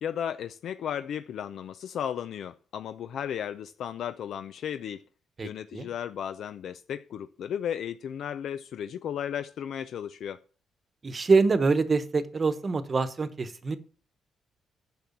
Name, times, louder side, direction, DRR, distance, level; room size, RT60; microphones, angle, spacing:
voice 1, 0.0-5.0 5.4-10.4, left 9 dB, 70° left, 0.5 m, -34 dB
voice 2, 5.4-5.9 11.0-13.8, right 4 dB, 30° right, 1.0 m, -25 dB
10.5 x 6.2 x 7.2 m
cardioid pair, 135°, 0 cm